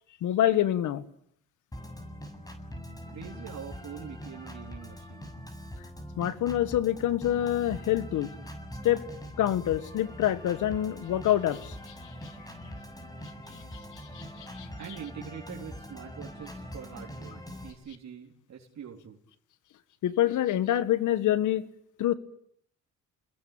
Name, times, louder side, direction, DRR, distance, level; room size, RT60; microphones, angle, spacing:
voice 1, 0.2-1.0 6.2-8.3 8.8-9.0 9.4-11.8 14.1-14.7 20.0-21.6 22.0-22.1, left 12 dB, 80° left, 14 dB, 1.8 m, -26 dB
Organ, 1.7-17.7, equal, 10° left, 7.5 m, -43 dB
voice 2, 3.1-5.3 14.8-19.2, right 8 dB, 65° right, -1 dB, 4.1 m, -44 dB
29.0 x 21.5 x 8.8 m, 0.67 s
cardioid pair, 90°, 30 cm